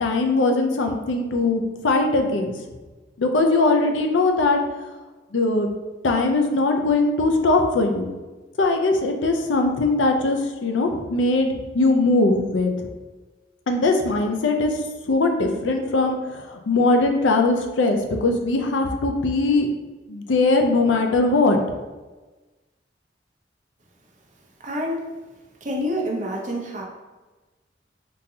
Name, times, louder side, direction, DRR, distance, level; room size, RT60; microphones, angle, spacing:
voice 1, 0.0-2.5 3.2-4.9 5.3-5.7 6.0-8.1 8.6-11.5 11.7-12.7 13.7-19.7 20.1-21.6, left 2 dB, 90° left, 4 dB, 0.5 m, -20 dB
voice 2, 24.6-25.1 25.6-26.8, equal, 40° right, -1 dB, 0.6 m, -27 dB
3.7 x 2.7 x 2.8 m, 1.2 s
head